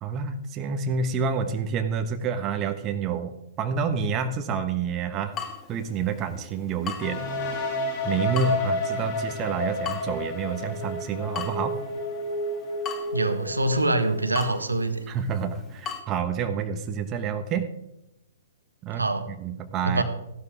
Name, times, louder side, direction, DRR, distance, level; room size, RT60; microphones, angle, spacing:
voice 1, 0.0-5.4 5.7-7.3 8.0-11.8 15.1-17.7 18.8-20.0, right 6 dB, 25° right, 7 dB, 1.2 m, -28 dB
Water tap faucet / Drip, 5.3-16.0, left 7 dB, 20° left, 1.6 m, -41 dB
sound 1, 7.0-14.7, left 1 dB, 40° left, 2.5 m, -31 dB
voice 2, 13.1-15.0 18.9-19.3 19.9-20.0, right 2 dB, 85° right, 8 dB, 1.5 m, -25 dB
15.5 x 12.0 x 3.5 m, 0.85 s
figure-of-eight pair, 115°, 0 cm